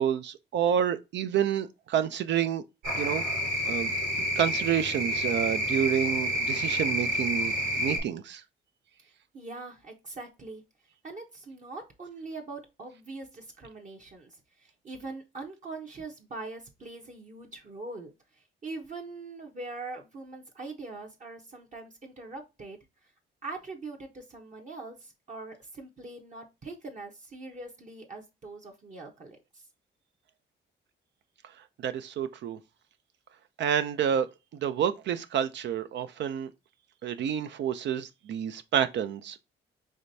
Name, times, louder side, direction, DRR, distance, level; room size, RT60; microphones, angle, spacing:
voice 1, 0.0-2.6 3.0-3.2 3.7-3.9 4.4-8.4 31.8-32.6 33.6-34.3 34.5-36.5 37.0-39.4, right 9 dB, 65° right, 0.5 m, -29 dB
sound 1, 2.8-8.0, equal, 80° right, 1.8 m, -29 dB
voice 2, 9.3-10.6 11.0-22.8 23.4-29.4, right 3 dB, 40° right, 0.9 m, -42 dB
5.0 x 3.2 x 2.6 m
cardioid pair, 90°, 20 cm